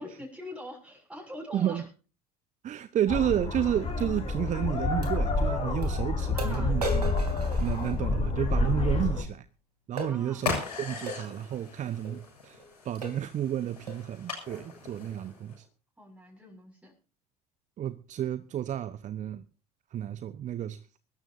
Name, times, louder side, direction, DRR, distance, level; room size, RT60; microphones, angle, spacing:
voice 1, 0.0-1.8 6.3-6.8 10.0-10.4 15.3-15.5 16.0-16.9, left 1 dB, 5° right, 6.4 m, -43 dB
voice 2, 1.5-1.8 2.6-6.8 7.6-9.5 9.9-10.5 10.8-12.6 12.8-15.6 17.8-19.4 19.9-20.8, right 11 dB, 40° right, 1.0 m, -31 dB
sound 1, 3.1-9.2, left 3 dB, 30° left, 4.7 m, -28 dB
sound 2, 4.0-4.1 5.0-5.1 5.8-5.9 6.4-8.3 10.0-10.2 11.1-11.3 12.0-12.2 12.6-12.7 13.0-13.3 13.9-14.1, right 2 dB, 85° right, 3.1 m, -37 dB
sound 3, 10.4-15.6, left 4 dB, 85° left, 6.8 m, -38 dB
23.5 x 13.0 x 2.7 m
figure-of-eight pair, 65°, 20 cm